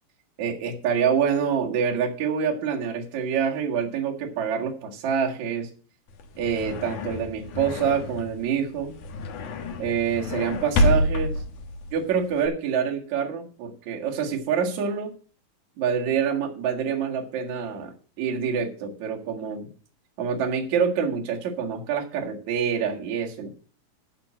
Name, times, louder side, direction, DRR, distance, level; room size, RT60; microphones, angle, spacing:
voice 1, 0.4-5.7 6.4-8.9 9.8-11.3 11.9-15.1 15.8-19.7 20.2-23.6, right 7 dB, 55° right, 0 dB, 2.9 m, -26 dB
sound 1, 6.1-12.5, left 1 dB, 65° left, 2.4 m, -28 dB
12.5 x 4.5 x 7.5 m, 0.39 s
omnidirectional pair, 4.2 m